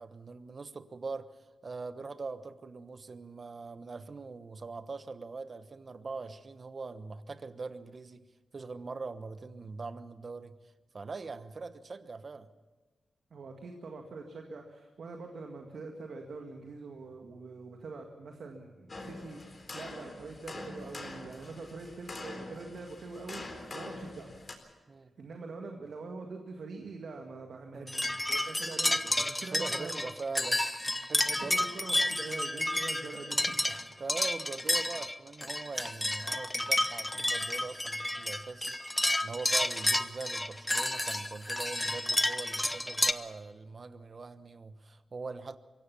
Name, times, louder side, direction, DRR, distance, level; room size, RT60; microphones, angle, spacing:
voice 1, 0.0-12.5 24.9-25.1 27.7-27.9 29.5-31.6 33.7-45.6, right 4 dB, 45° right, 1.1 m, -42 dB
voice 2, 13.3-24.3 25.2-30.0 31.2-33.5, right 3 dB, 70° right, 2.0 m, -44 dB
sound 1, 18.9-24.5, left 2 dB, 40° left, 4.1 m, -44 dB
sound 2, 27.9-43.1, left 1 dB, 15° left, 0.9 m, -31 dB
23.5 x 16.5 x 7.2 m
cardioid pair, 80°, 0 cm